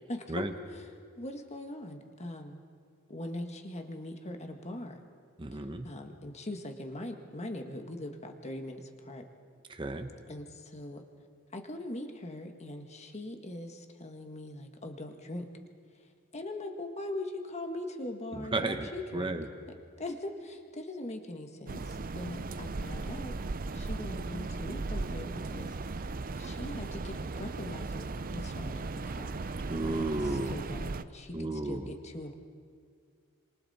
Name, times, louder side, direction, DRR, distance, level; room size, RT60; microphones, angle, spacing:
voice 1, 0.1-0.4 1.2-2.6 3.1-5.0 5.5-9.2 10.3-11.0 11.5-15.5 16.3-19.4 19.7-23.4 23.7-25.8 26.4-29.4 30.5-32.4, left 1 dB, 30° left, 4 dB, 1.6 m, -41 dB
voice 2, 5.4-5.9 9.7-10.1 18.3-19.5 29.7-30.6 31.3-31.9, right 2 dB, 20° right, 6 dB, 1.0 m, -33 dB
sound 1, 21.7-31.0, right 3 dB, 40° right, 0.6 m, -37 dB
28.0 x 26.5 x 4.3 m, 2.2 s
head